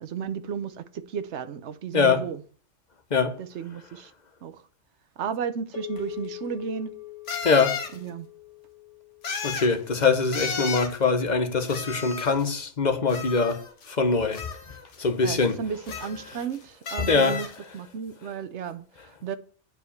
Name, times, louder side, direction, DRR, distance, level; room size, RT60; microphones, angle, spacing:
voice 1, 0.0-2.4 3.4-4.1 4.4-4.6 5.2-6.9 7.9-8.3 15.2-17.5 17.7-19.4, right 7 dB, 70° right, 1.1 m, -33 dB
voice 2, 1.9-2.2 3.1-3.4 7.4-7.8 9.4-14.5 15.0-15.6 17.0-17.4, left 4 dB, 40° left, 1.1 m, -23 dB
sound 1, 5.7-10.2, left 16 dB, 90° left, 2.3 m, -42 dB
sound 2, 6.0-6.1 7.3-8.0 9.2-9.8 10.3-11.0 11.7-12.5 13.1-13.9 14.3-15.0 15.9-16.6 16.9-17.6, left 5 dB, 75° left, 1.5 m, -34 dB
9.0 x 5.0 x 7.0 m
omnidirectional pair, 1.2 m